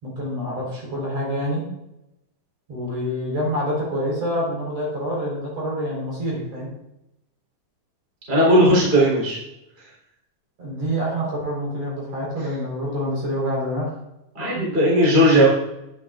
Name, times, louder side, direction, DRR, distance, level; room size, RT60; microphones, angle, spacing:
voice 1, 0.0-1.7 2.7-6.7 10.6-13.9 14.6-14.7, equal, 45° right, -4 dB, 5.3 m, -27 dB
voice 2, 8.3-9.4 14.3-15.5, equal, 15° right, -5 dB, 3.8 m, -16 dB
11.5 x 10.5 x 2.5 m, 0.88 s
omnidirectional pair, 4.2 m